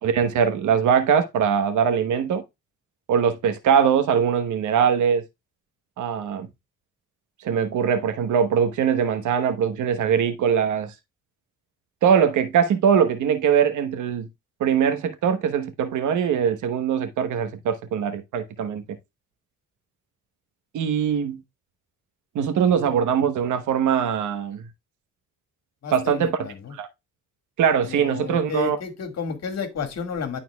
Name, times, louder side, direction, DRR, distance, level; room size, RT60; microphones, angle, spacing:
voice 1, 0.0-2.4 3.1-5.2 6.0-6.5 7.4-10.9 12.0-14.3 14.6-18.8 20.7-21.4 22.3-24.7 25.9-26.5 26.7-26.9 27.6-28.8, right 7 dB, 75° right, 1.1 m, -22 dB
voice 2, 25.8-26.8 27.8-30.4, left 6 dB, 60° left, 2.0 m, -31 dB
11.5 x 4.3 x 2.3 m
cardioid pair, 90°, 30 cm